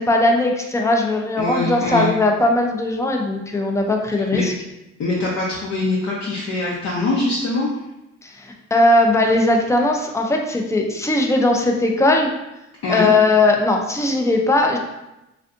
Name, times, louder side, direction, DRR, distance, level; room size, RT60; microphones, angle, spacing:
voice 1, 0.0-4.5 8.2-12.3 12.9-14.8, left 2 dB, 10° left, 2 dB, 0.4 m, -18 dB
voice 2, 1.4-2.1 4.3-4.4 5.0-7.7 12.8-13.1, left 2 dB, 55° left, -5 dB, 0.7 m, -23 dB
3.4 x 2.5 x 2.5 m, 0.92 s
cardioid pair, 90°, 30 cm